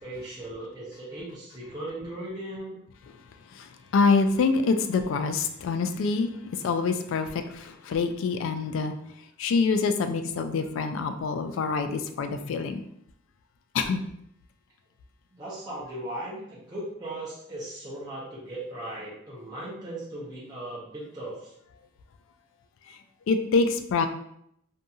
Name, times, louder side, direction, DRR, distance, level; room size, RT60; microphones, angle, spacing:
voice 1, 0.0-2.8 15.3-21.5, right 1 dB, 20° right, -8 dB, 0.6 m, -38 dB
voice 2, 3.5-8.9 9.4-12.8 13.7-14.0 22.9-23.0 23.3-24.1, left 4 dB, 80° left, 9 dB, 0.3 m, -26 dB
2.7 x 2.6 x 2.3 m, 0.73 s
head